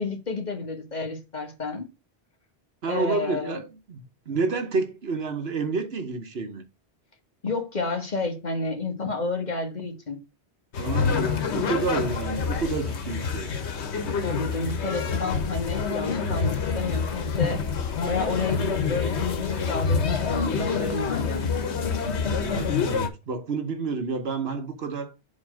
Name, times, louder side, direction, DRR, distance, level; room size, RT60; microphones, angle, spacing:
voice 1, 0.0-1.9 2.9-3.6 7.4-10.2 14.2-17.6 18.1-21.6, left 3 dB, 45° left, 1.4 m, -30 dB
voice 2, 2.8-6.6 10.8-13.5 22.4-25.1, right 4 dB, 70° right, 1.3 m, -30 dB
sound 1, 10.7-23.1, left 5 dB, 85° left, 1.3 m, -27 dB
7.5 x 3.2 x 6.2 m
omnidirectional pair, 1.1 m